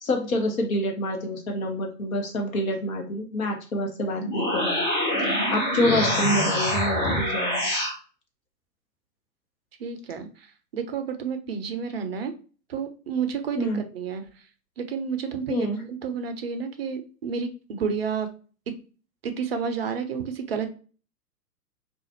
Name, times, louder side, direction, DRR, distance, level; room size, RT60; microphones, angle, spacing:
voice 1, 0.0-4.8 5.2-7.7 13.6-13.8 15.5-15.8, left 1 dB, 55° left, 3 dB, 1.1 m, -27 dB
sound 1, 4.1-8.0, equal, 30° left, 1.0 m, -25 dB
voice 2, 9.8-10.3 10.7-12.3 12.7-14.2 14.8-18.3 18.7-18.8 19.2-20.7, right 6 dB, 40° right, 8 dB, 0.4 m, -30 dB
3.7 x 2.5 x 2.8 m, 0.38 s
figure-of-eight pair, 115°, 49 cm